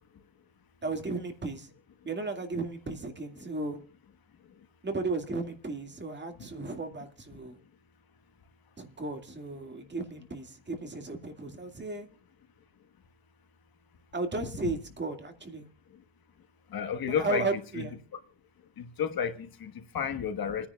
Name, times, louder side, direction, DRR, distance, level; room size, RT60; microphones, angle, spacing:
voice 1, 0.8-1.7 2.1-3.8 4.8-7.6 8.8-12.1 14.1-15.7 17.1-18.0, right 3 dB, 25° right, 2.1 m, -35 dB
voice 2, 16.7-17.9 18.1-18.2 18.8-20.7, left 7 dB, 50° left, 1.5 m, -32 dB
28.0 x 10.0 x 2.4 m
cardioid pair, 130°, 45 cm